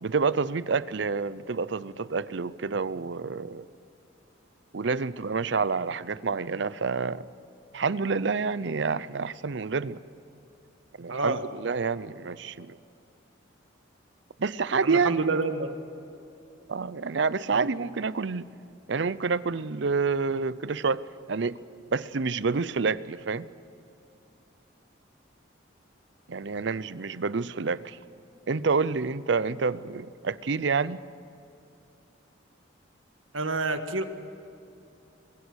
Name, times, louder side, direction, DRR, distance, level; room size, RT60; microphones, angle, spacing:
voice 1, 0.0-3.7 4.7-7.2 7.7-10.0 11.0-12.8 14.4-15.4 16.7-18.5 18.9-21.0 21.3-21.6 21.9-23.5 26.3-28.0 28.5-31.0, right 4 dB, 65° right, 17 dB, 0.6 m, -28 dB
voice 2, 11.1-11.4 14.8-15.7 17.5-17.7 33.3-34.0, right 3 dB, 85° right, 8 dB, 1.6 m, -28 dB
23.5 x 21.5 x 6.4 m, 2.7 s
head